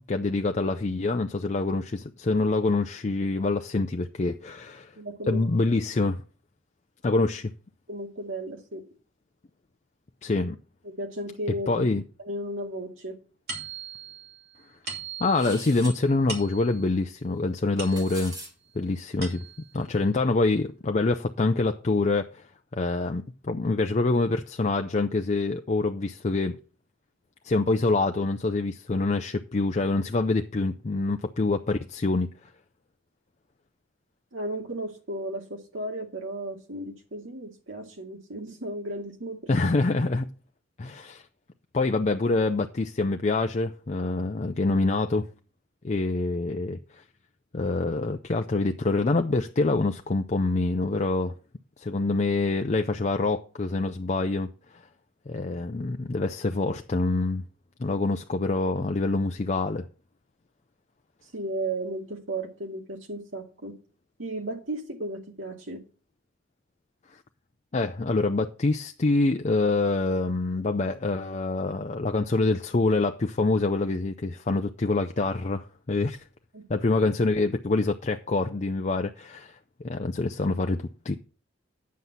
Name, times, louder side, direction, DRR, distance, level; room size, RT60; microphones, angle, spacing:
voice 1, 0.0-4.9 5.3-6.2 7.0-7.5 10.2-10.6 11.7-12.0 15.2-18.3 18.7-19.5 19.7-22.5 22.7-26.6 27.4-32.3 39.5-40.3 40.8-41.2 41.7-45.3 45.8-47.0 47.5-51.3 51.8-54.8 55.3-57.4 57.8-59.9 67.7-76.2 76.7-81.1, left 3 dB, 35° left, 0.5 m, -26 dB
voice 2, 5.0-5.4 7.9-8.8 10.8-11.9 12.2-13.2 34.3-39.4 61.3-63.7 64.2-65.8 76.5-76.6, right 1 dB, 80° right, 2.3 m, -34 dB
sound 1, 13.5-18.5 18.9-19.8, right 5 dB, 55° right, 3.2 m, -41 dB
sound 2, 15.3-16.0 17.6-18.5, right 1 dB, 20° right, 3.4 m, -41 dB
9.4 x 7.6 x 4.1 m
head